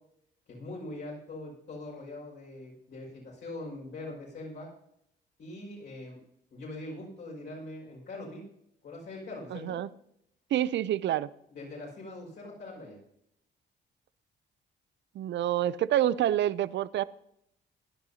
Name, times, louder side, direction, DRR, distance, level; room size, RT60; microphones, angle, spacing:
voice 1, 0.5-4.7 5.4-6.2 6.5-8.4 8.8-9.8 11.5-13.0, left 2 dB, 60° left, -4 dB, 5.7 m, -42 dB
voice 2, 9.5-9.9 10.5-11.3 15.1-17.0, right 12 dB, 65° right, 18 dB, 0.5 m, -27 dB
17.0 x 10.5 x 2.8 m, 0.76 s
cardioid pair, 90°, 20 cm